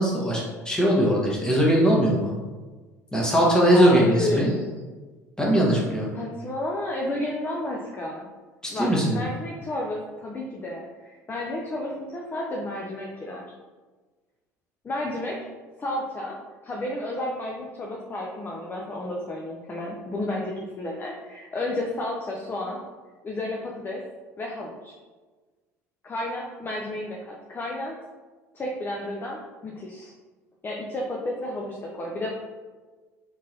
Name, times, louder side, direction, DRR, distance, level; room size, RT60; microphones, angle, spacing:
voice 1, 0.0-2.3 3.1-4.5 5.4-6.1 8.6-9.2, equal, 10° left, -4 dB, 1.5 m, -20 dB
voice 2, 3.7-4.6 6.1-8.3 8.7-13.5 14.8-15.4 15.8-16.4 16.6-22.8 23.2-24.0 24.4-24.9 26.0-27.9 28.5-30.1 30.6-32.3, left 1 dB, 25° left, -1 dB, 0.7 m, -31 dB
4.5 x 3.9 x 2.9 m, 1.3 s
figure-of-eight pair, 60°, 9 cm